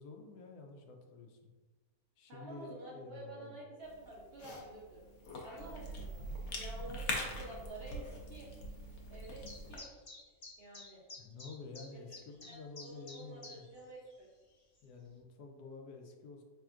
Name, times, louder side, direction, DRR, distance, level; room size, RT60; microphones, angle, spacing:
voice 1, 0.0-1.5 2.2-3.5 11.2-13.7 14.8-16.4, left 4 dB, 90° left, 3 dB, 1.2 m, -50 dB
voice 2, 2.3-5.0 5.4-6.3 6.6-8.5 9.1-9.9 10.6-11.0 12.4-12.6 12.8-14.3, right 1 dB, 55° right, -4 dB, 0.7 m, -49 dB
Cough / Chewing mastication, 3.8-9.8, left 1 dB, 60° left, 0.8 m, -43 dB
sound 1, 9.2-13.8 14.1-14.2 14.8-14.9, left 2 dB, 35° left, 0.4 m, -51 dB
4.3 x 3.3 x 2.4 m, 1.3 s
omnidirectional pair, 1.6 m